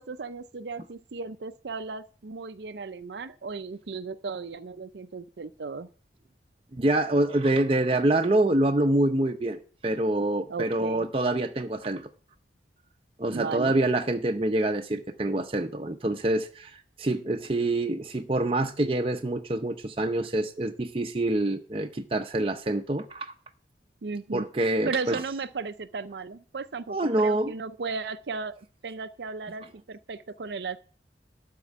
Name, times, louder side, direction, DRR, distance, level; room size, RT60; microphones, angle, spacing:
voice 1, 0.0-5.9 10.5-11.1 13.3-13.7 24.0-24.5 24.9-30.8, right 4 dB, 70° right, 11 dB, 0.5 m, -35 dB
voice 2, 6.7-12.1 13.2-23.3 24.3-25.2 26.9-27.5, right 2 dB, 30° right, 4 dB, 0.7 m, -26 dB
12.5 x 4.5 x 8.3 m, 0.41 s
head